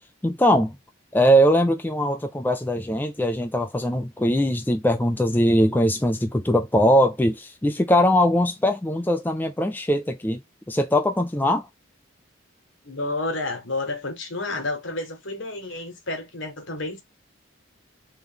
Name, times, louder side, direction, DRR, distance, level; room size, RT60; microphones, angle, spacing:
voice 1, 0.2-0.7 1.1-10.4 10.7-11.7, equal, 10° left, 0.4 m, -21 dB
voice 2, 12.8-17.0, left 2 dB, 65° left, 1.5 m, -30 dB
3.5 x 3.0 x 3.6 m
head